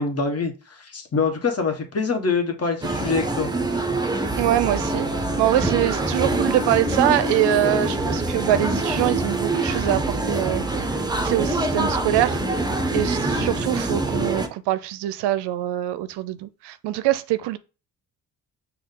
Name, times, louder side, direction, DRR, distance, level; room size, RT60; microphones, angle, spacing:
voice 1, 0.0-3.5, left 4 dB, 35° left, 1.2 m, -25 dB
sound 1, 2.8-14.5, right 2 dB, 10° right, 0.7 m, -25 dB
voice 2, 4.4-5.1 5.4-12.4 12.9-17.6, right 13 dB, 75° right, 0.5 m, -24 dB
5.1 x 2.4 x 3.7 m
supercardioid pair, 55°, 41 cm